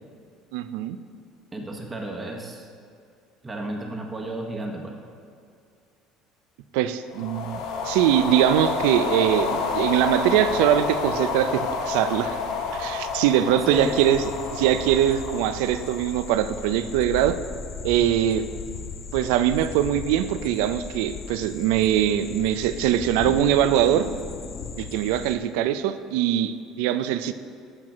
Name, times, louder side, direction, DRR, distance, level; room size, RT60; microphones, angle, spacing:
voice 1, 0.5-1.0 6.7-12.4 12.7-17.4 17.8-18.5 19.1-24.1 24.8-27.3, right 11 dB, 85° right, 12 dB, 0.4 m, -22 dB
voice 2, 1.5-2.7 3.4-5.0 13.7-13.9, right 2 dB, 20° right, 1 dB, 1.0 m, -33 dB
sound 1, 7.1-16.6, left 4 dB, 75° left, 0.9 m, -29 dB
sound 2, 13.7-25.4, left 6 dB, 45° left, 0.6 m, -37 dB
8.6 x 4.4 x 6.0 m, 2.4 s
supercardioid pair, 110°, 0 cm